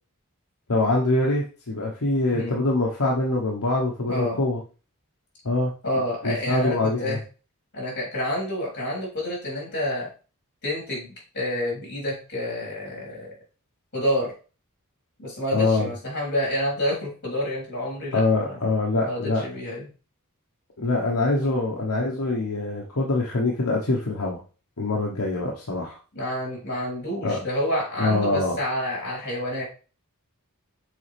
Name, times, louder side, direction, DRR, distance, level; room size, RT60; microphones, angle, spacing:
voice 1, 0.7-4.6 5.4-5.7 6.2-7.2 15.5-15.9 18.1-19.4 20.8-24.4 24.8-26.0 27.2-27.4 28.0-28.6, left 2 dB, 75° left, -3 dB, 1.1 m, -24 dB
voice 2, 4.1-4.4 5.8-7.2 7.7-10.1 10.6-13.3 13.9-14.3 15.2-18.6 19.0-19.8 21.4-21.5 26.1-29.6, equal, 50° left, -2 dB, 3.8 m, -28 dB
6.9 x 4.2 x 3.4 m, 0.35 s
head